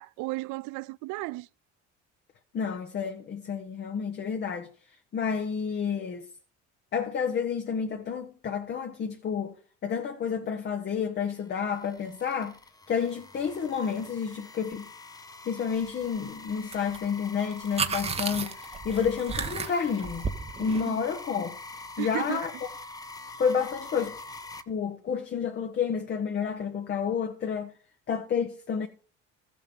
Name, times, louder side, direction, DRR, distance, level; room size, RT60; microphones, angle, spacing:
voice 1, 0.0-1.5 20.9-21.0 22.0-22.4, right 22 dB, 80° right, 0.5 m, -34 dB
voice 2, 2.5-6.3 6.9-9.5 9.8-12.6 12.9-14.9 15.4-20.2 20.6-21.6 22.0-22.5 23.4-24.2 24.7-27.7 28.1-28.9, left 6 dB, 35° left, 1.1 m, -30 dB
sound 1, 11.2-24.6, left 3 dB, 10° left, 0.9 m, -45 dB
sound 2, 16.7-17.0 17.2-20.8, right 5 dB, 20° right, 1.1 m, -33 dB
14.0 x 7.4 x 5.4 m
cardioid pair, 135°, 30 cm